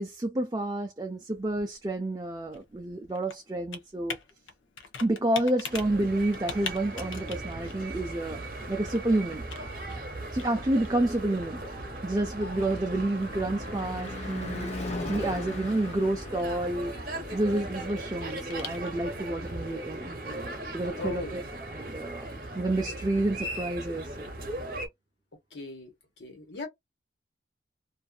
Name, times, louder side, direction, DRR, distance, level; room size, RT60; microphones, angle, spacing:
voice 1, 0.0-4.2 5.0-9.4 10.3-11.6 12.0-14.7 15.1-16.9 17.3-22.3 22.5-24.2, right 1 dB, 20° right, 0.4 m, -29 dB
Computer keyboard, 1.0-19.2, left 6 dB, 90° left, 0.7 m, -46 dB
sound 1, 5.7-24.9, right 1 dB, 50° right, 0.9 m, -38 dB
Car passing by / Truck / Engine, 11.1-21.0, left 2 dB, 35° left, 0.7 m, -41 dB
voice 2, 21.0-21.5 25.5-25.9 26.2-26.7, left 2 dB, 70° left, 1.3 m, -38 dB
2.6 x 2.4 x 2.3 m
head